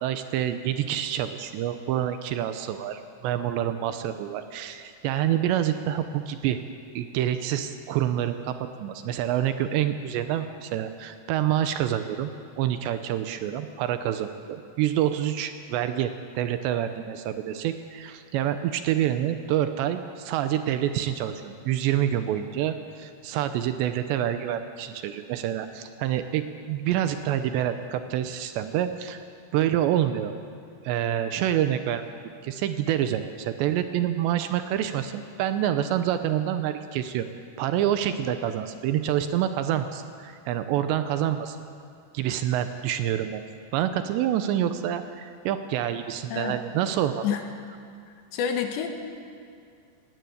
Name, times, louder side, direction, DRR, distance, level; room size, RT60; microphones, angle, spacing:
voice 1, 0.0-6.6 6.9-12.3 12.6-29.2 29.5-30.3 30.8-32.0 32.4-37.3 37.6-41.6 42.1-43.4 43.7-47.3, right 11 dB, 85° right, 9 dB, 2.9 m, -27 dB
voice 2, 48.3-48.9, left 8 dB, 75° left, 5 dB, 3.6 m, -27 dB
18.5 x 18.0 x 8.5 m, 2.3 s
omnidirectional pair, 5.2 m